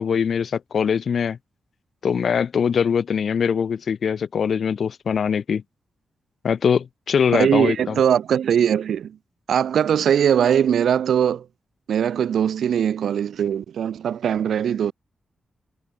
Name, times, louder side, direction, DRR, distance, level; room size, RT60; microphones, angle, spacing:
voice 1, 0.0-1.4 2.0-5.6 6.4-8.0, left 7 dB, 55° left, 1.9 m, -22 dB
voice 2, 7.3-9.2 9.5-11.4 11.9-14.9, right 8 dB, 75° right, 0.6 m, -20 dB
wide cardioid pair, 145°, 0 cm